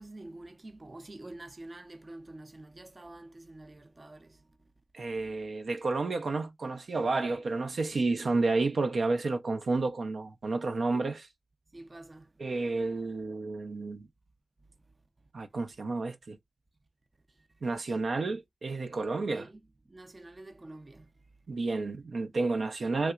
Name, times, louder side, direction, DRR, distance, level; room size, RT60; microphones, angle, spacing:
voice 1, 0.0-4.5 11.7-12.3 17.3-17.5 19.3-19.6 19.9-21.1, right 2 dB, 35° right, 0.6 m, -47 dB
voice 2, 4.9-11.3 12.4-14.1 15.3-16.4 17.6-19.5 21.5-23.1, right 3 dB, 80° right, 0.6 m, -31 dB
3.3 x 2.8 x 2.3 m
wide cardioid pair, 75°, 0 cm